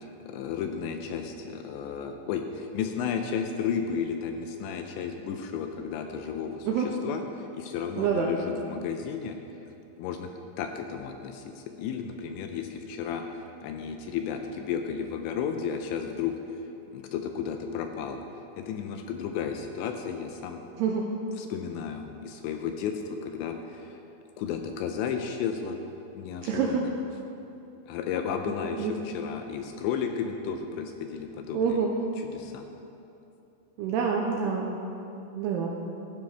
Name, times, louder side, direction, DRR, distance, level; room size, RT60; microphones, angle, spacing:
voice 1, 0.0-9.4 10.0-10.3 10.6-16.4 16.9-18.2 18.6-20.6 21.4-24.0 24.4-25.8 26.2-26.9 27.9-31.8 32.2-32.7, left 7 dB, 80° left, 5 dB, 2.8 m, -33 dB
voice 2, 8.0-8.3 20.8-21.0 26.5-26.9 28.5-28.9 31.5-31.9 33.8-34.7 35.3-35.7, right 6 dB, 80° right, 0 dB, 2.4 m, -27 dB
16.0 x 13.0 x 3.5 m, 2.8 s
omnidirectional pair, 5.5 m